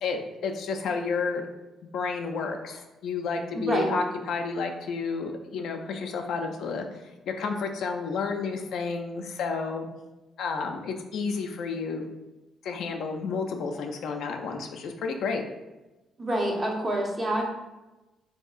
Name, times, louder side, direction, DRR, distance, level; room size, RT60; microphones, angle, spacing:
voice 1, 0.0-1.4 1.9-9.9 10.4-12.1 12.6-15.4, left 4 dB, 75° left, 3 dB, 0.4 m, -31 dB
voice 2, 3.5-4.0 16.2-17.5, right 1 dB, 30° right, -1 dB, 0.8 m, -27 dB
3.5 x 2.6 x 2.4 m, 1.1 s
cardioid pair, 90°, 0 cm